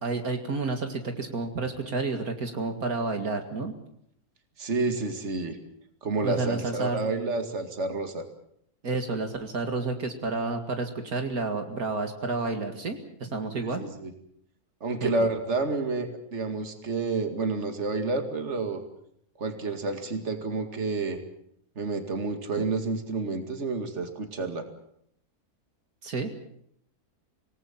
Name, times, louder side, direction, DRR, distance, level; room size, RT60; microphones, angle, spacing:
voice 1, 0.0-3.7 6.2-7.1 8.8-13.8 15.0-15.1 26.0-26.3, right 3 dB, 70° right, 5 dB, 2.5 m, -30 dB
voice 2, 4.6-5.6 6.0-8.2 13.6-14.1 14.8-18.8 19.4-21.2 21.8-24.6, right 3 dB, 45° right, 7 dB, 2.5 m, -29 dB
26.5 x 19.0 x 7.3 m, 0.68 s
omnidirectional pair, 1.6 m